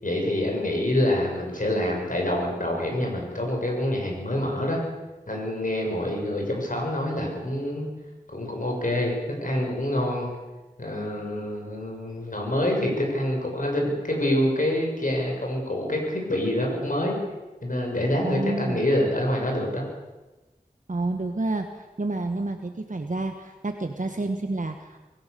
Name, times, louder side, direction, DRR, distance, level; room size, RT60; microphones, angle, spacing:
voice 1, 0.0-4.8 5.3-7.9 8.3-9.1 9.4-10.3 10.8-17.1 17.6-19.8, left 1 dB, 60° left, 0 dB, 6.9 m, -26 dB
voice 2, 18.2-18.8 20.9-25.0, right 2 dB, 60° right, 5 dB, 1.4 m, -29 dB
25.0 x 16.0 x 6.9 m, 1.1 s
wide cardioid pair, 55°, 15 cm